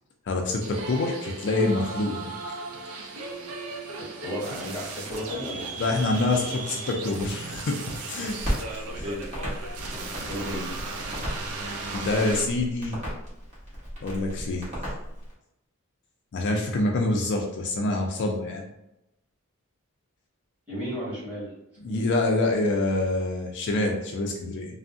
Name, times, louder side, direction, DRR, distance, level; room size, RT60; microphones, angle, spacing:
voice 1, 0.3-2.3 5.8-8.6 9.0-9.1 11.9-13.0 14.0-14.7 16.3-18.7 21.8-24.7, left 2 dB, 55° left, 1 dB, 0.4 m, -26 dB
sound 1, 0.6-12.4, right 3 dB, 75° right, 0.4 m, -36 dB
voice 2, 4.2-5.7 8.8-9.2 9.9-10.8 20.7-21.5 21.8-22.0, equal, 5° right, -8 dB, 1.4 m, -34 dB
Crackle, 8.4-15.3, equal, 30° right, 1.1 m, -35 dB
3.4 x 2.0 x 2.5 m, 0.87 s
head